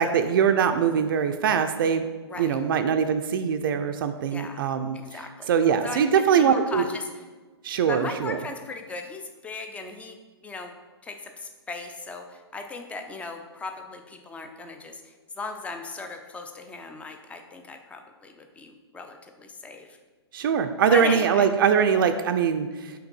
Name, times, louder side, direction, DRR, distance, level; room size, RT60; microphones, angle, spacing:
voice 1, 0.0-2.0 2.4-6.9 7.6-8.4 20.3-22.9, right 7 dB, 50° right, 7 dB, 0.5 m, -22 dB
voice 2, 2.3-2.6 4.3-4.7 4.9-5.5 5.8-7.1 7.9-10.2 10.4-10.7 11.0-19.9 20.9-21.5, left 3 dB, 10° left, 5 dB, 0.5 m, -37 dB
5.7 x 3.6 x 5.4 m, 1.3 s
figure-of-eight pair, 115°, 14 cm